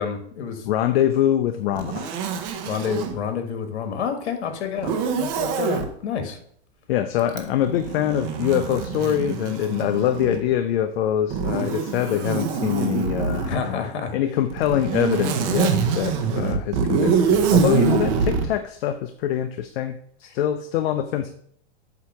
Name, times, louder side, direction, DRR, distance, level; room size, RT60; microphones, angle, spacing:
voice 1, 0.0-0.7 2.6-6.4 13.4-14.1, left 6 dB, 85° left, 7 dB, 1.4 m, -29 dB
voice 2, 0.6-2.1 6.9-21.3, left 11 dB, 60° left, 9 dB, 0.6 m, -24 dB
Zipper (clothing), 1.8-3.2 4.8-5.9 7.3-10.5 11.3-13.6 14.5-18.5, right 6 dB, 40° right, 0.9 m, -24 dB
8.0 x 2.9 x 5.9 m, 0.64 s
supercardioid pair, 145°, 33 cm